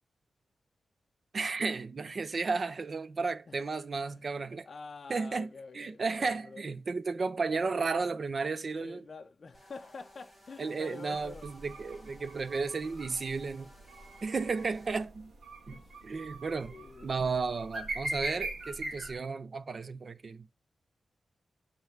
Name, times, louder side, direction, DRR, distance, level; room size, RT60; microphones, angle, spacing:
voice 1, 1.3-4.7 5.1-5.5 5.7-9.0 10.6-13.7 14.2-15.3 15.7-16.7 17.0-20.5, right 4 dB, 45° right, 0.4 m, -33 dB
voice 2, 4.6-6.7 8.7-11.5 14.9-15.1 15.7-16.0 16.7-17.2, left 4 dB, 40° left, 0.5 m, -47 dB
sound 1, 9.5-15.1, equal, 20° right, 1.8 m, -57 dB
sound 2, 11.1-19.1, right 2 dB, 65° right, 1.7 m, -42 dB
8.3 x 3.3 x 3.4 m
wide cardioid pair, 155°, 0 cm